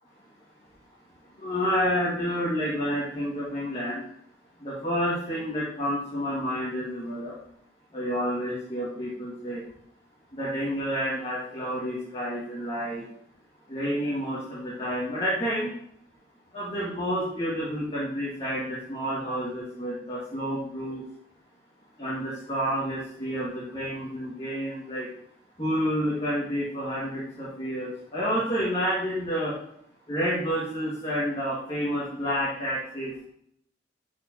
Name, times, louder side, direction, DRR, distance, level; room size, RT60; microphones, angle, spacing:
voice 1, 1.4-4.0 4.6-7.3 7.9-9.6 10.3-13.0 13.7-15.7 16.5-21.0 22.0-25.1 25.6-29.5 30.1-33.1, equal, 30° left, -8 dB, 1.9 m, -29 dB
11.5 x 4.9 x 2.8 m, 0.70 s
head